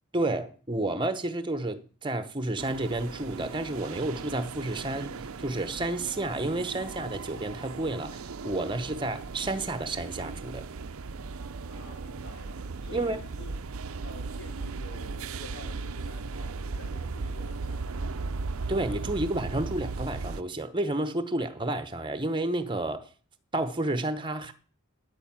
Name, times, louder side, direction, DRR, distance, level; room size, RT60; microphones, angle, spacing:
voice 1, 0.1-10.6 12.9-13.2 18.7-23.1 23.5-24.5, right 2 dB, 20° right, 0.9 m, -31 dB
sound 1, 2.6-20.4, right 4 dB, 65° right, 0.6 m, -37 dB
voice 2, 11.6-13.6 14.0-18.3, left 1 dB, 60° left, 4.7 m, -49 dB
9.8 x 9.1 x 7.4 m
head